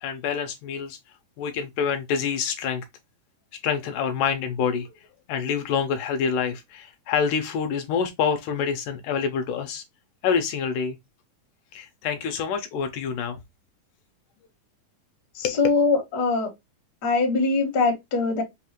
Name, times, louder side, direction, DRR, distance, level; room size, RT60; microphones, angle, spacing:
voice 1, 0.0-1.0 1.4-2.8 3.6-4.9 5.3-9.8 10.2-11.0 11.7-13.4 15.4-15.6, left 6 dB, 80° left, 2.0 m, -26 dB
voice 2, 15.4-16.5 17.0-18.4, left 3 dB, 55° left, 1.0 m, -22 dB
5.4 x 2.4 x 2.8 m
omnidirectional pair, 3.9 m